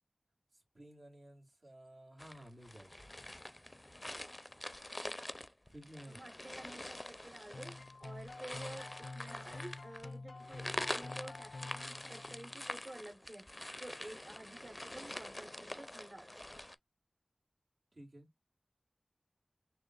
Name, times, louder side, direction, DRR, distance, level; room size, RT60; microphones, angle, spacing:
voice 1, 0.5-3.0 5.7-6.2 17.9-18.3, equal, 85° right, 1.6 m, -54 dB
sound 1, 2.2-16.8, left 1 dB, 25° left, 0.4 m, -45 dB
voice 2, 6.1-7.7 8.0-13.4 13.8-16.5, right 1 dB, 50° right, 0.8 m, -51 dB
sound 2, 7.5-12.7, left 3 dB, 85° left, 0.4 m, -48 dB
6.3 x 2.3 x 2.3 m
wide cardioid pair, 55°, 0 cm